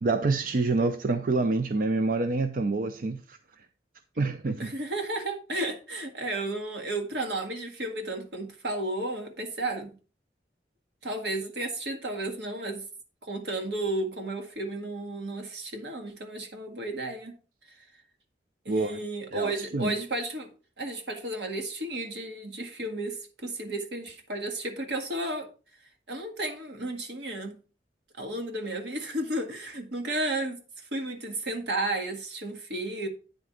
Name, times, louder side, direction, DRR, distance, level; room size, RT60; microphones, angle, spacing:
voice 1, 0.0-3.4 4.2-4.7 18.7-19.0 19.3-19.9, right 3 dB, 50° right, 0.4 m, -27 dB
voice 2, 4.6-9.9 11.0-12.8 13.2-17.3 18.6-20.5 20.8-25.5 26.1-27.5 28.2-30.6 30.9-33.1, right 2 dB, 75° right, 1.7 m, -33 dB
9.3 x 4.2 x 4.9 m
head